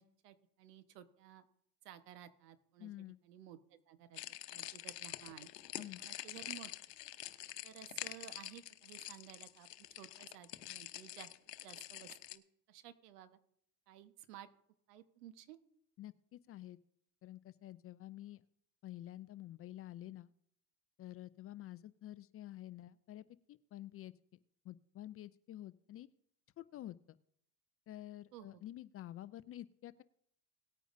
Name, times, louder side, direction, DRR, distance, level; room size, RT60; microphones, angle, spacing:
voice 1, 0.0-1.4 1.8-2.9 3.2-4.2 4.5-5.5 5.8-6.7 7.6-12.4 12.7-13.4 13.9-14.5 14.9-15.6 28.3-28.6, right 11 dB, 80° right, 10 dB, 1.3 m, -55 dB
voice 2, 2.8-3.2 5.8-6.0 16.0-16.8 17.2-18.4 18.8-20.3 21.0-24.1 24.6-26.1 26.6-27.2 27.9-30.0, left 14 dB, 30° left, 16 dB, 0.4 m, -49 dB
sound 1, 4.1-12.4, left 15 dB, 90° left, 0.9 m, -47 dB
18.5 x 9.1 x 2.6 m, 0.69 s
hypercardioid pair, 90°, 47 cm